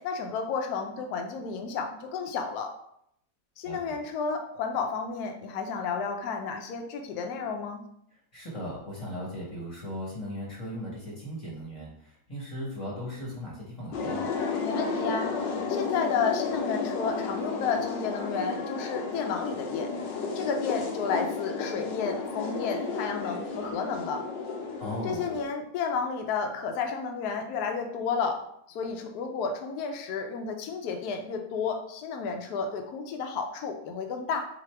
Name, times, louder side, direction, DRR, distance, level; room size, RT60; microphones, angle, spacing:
voice 1, 0.0-2.7 3.6-7.8 14.6-19.9 20.3-24.3 25.0-28.4 28.7-34.5, left 5 dB, 70° left, 4 dB, 1.1 m, -32 dB
voice 2, 8.3-14.3 24.8-25.3, equal, 20° left, -5 dB, 1.0 m, -37 dB
sound 1, 13.9-25.4, left 4 dB, 85° left, 1.4 m, -32 dB
4.1 x 2.7 x 4.3 m, 0.71 s
omnidirectional pair, 1.9 m